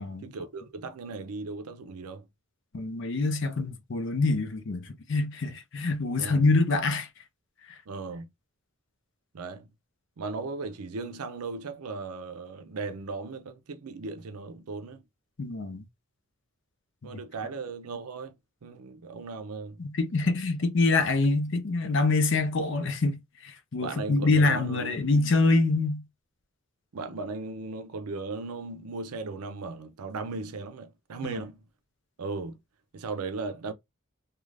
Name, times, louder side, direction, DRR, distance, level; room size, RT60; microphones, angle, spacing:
voice 1, 0.2-2.2 6.2-6.5 7.9-8.3 9.3-9.7 10.2-15.0 17.0-18.4 18.6-19.8 23.8-25.0 26.9-31.6 32.2-32.6 32.9-33.7, right 3 dB, 85° right, 0.5 m, -37 dB
voice 2, 2.7-7.1 15.4-15.8 19.8-23.2 23.4-26.0 31.2-31.3, left 3 dB, 55° left, 0.5 m, -25 dB
2.5 x 2.3 x 3.2 m
head